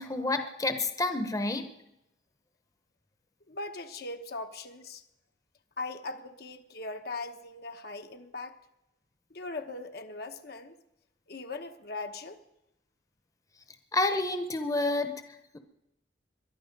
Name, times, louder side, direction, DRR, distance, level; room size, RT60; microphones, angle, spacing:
voice 1, 0.0-1.7 13.9-15.1, left 2 dB, 20° left, 0.9 m, -29 dB
voice 2, 3.5-5.0 5.8-8.5 9.3-10.8 11.3-12.4, left 3 dB, 60° left, 1.0 m, -40 dB
22.0 x 11.0 x 5.3 m
head